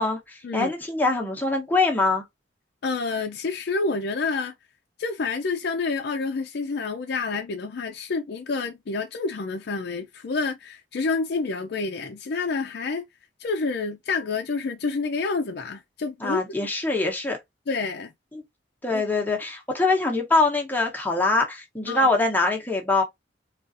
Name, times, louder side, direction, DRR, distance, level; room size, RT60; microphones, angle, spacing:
voice 1, 0.0-2.2 16.2-17.4 18.3-18.4 18.8-23.0, left 3 dB, 10° left, 0.9 m, -23 dB
voice 2, 2.8-4.5 5.0-13.0 13.4-16.7 17.7-18.1 18.9-19.0 21.8-22.1, left 4 dB, 60° left, 0.5 m, -28 dB
3.8 x 2.4 x 2.6 m
head